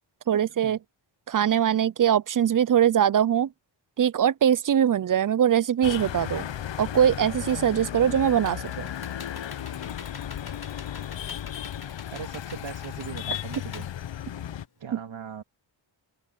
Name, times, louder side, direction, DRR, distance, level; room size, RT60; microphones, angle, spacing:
voice 1, 0.3-0.8 1.3-3.5 4.0-6.5 6.8-8.9, right 9 dB, 45° right, 0.5 m, -22 dB
sound 1, 5.8-14.7, left 10 dB, 70° left, 0.9 m, -35 dB
Computer keyboard, 7.9-14.8, left 5 dB, 50° left, 4.1 m, -47 dB
voice 2, 12.1-13.9 14.8-15.4, right 7 dB, 70° right, 3.3 m, -39 dB
open air
wide cardioid pair, 115°, 47 cm